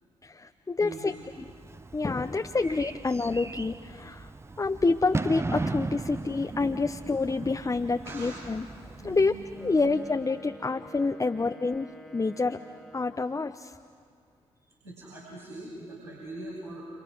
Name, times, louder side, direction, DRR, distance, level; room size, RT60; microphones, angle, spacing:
voice 1, 0.2-1.1 1.4-1.5 1.9-4.3 4.6-8.7 9.0-9.3 9.6-12.6 12.9-13.7, left 3 dB, 25° left, 6 dB, 0.9 m, -28 dB
voice 2, 0.8-1.1 8.0-8.5 9.0-10.0 14.8-16.8, right 1 dB, 85° right, -8 dB, 6.5 m, -42 dB
Bird / Fireworks, 1.1-10.3, right 3 dB, 20° right, 0.8 m, -37 dB
Wind instrument woodwind instrument, 9.5-13.6, equal, ahead, 1.9 m, -49 dB
29.5 x 27.5 x 6.3 m, 2.2 s
figure-of-eight pair, 40°, 14 cm